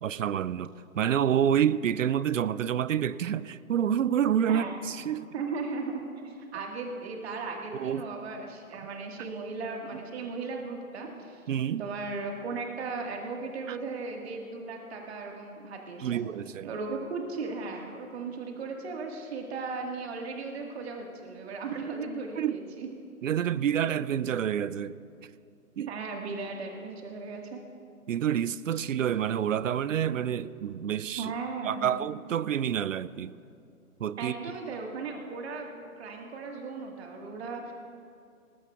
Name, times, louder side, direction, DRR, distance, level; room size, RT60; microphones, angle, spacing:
voice 1, 0.0-5.3 7.7-8.1 11.5-11.8 13.7-13.8 16.0-16.7 22.4-22.6 23.2-25.0 25.8-25.9 28.1-31.3 31.6-33.3 34.0-34.3, right 9 dB, 65° right, 0.5 m, -28 dB
voice 2, 4.5-4.8 5.3-11.4 11.8-16.2 16.6-22.9 25.9-27.6 31.2-31.9 34.2-35.7 36.0-37.7, right 4 dB, 45° right, 1.8 m, -36 dB
19.5 x 19.5 x 2.4 m
figure-of-eight pair, 140°, 43 cm